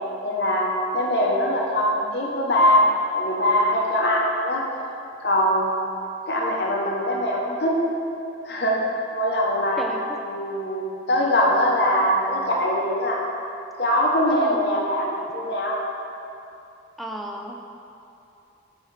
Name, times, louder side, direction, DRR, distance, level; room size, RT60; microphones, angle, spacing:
voice 1, 0.2-0.7 0.9-4.6 5.2-5.7 6.3-7.8 8.4-8.8 9.1-9.8 10.2-13.2 13.8-15.8, equal, 65° left, -2 dB, 0.7 m, -22 dB
voice 2, 9.8-10.2 14.3-14.6 17.0-17.7, right 1 dB, ahead, 1 dB, 0.3 m, -34 dB
8.5 x 4.3 x 3.2 m, 2.8 s
head